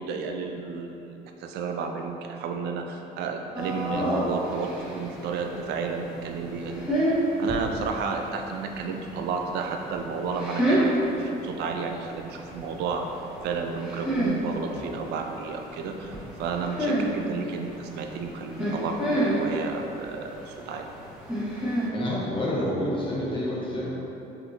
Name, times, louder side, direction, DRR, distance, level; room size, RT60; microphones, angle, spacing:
voice 1, 0.0-6.8 7.4-10.9 11.2-13.1 13.4-16.1 16.4-20.9, right 5 dB, 80° right, 4 dB, 0.4 m, -32 dB
sound 1, 3.5-21.9, right 1 dB, 5° right, 1.3 m, -30 dB
voice 2, 3.9-4.3 14.7-14.9 21.9-23.9, left 1 dB, 30° left, -6 dB, 1.0 m, -29 dB
5.6 x 2.7 x 2.8 m, 2.9 s
cardioid pair, 110°, 17 cm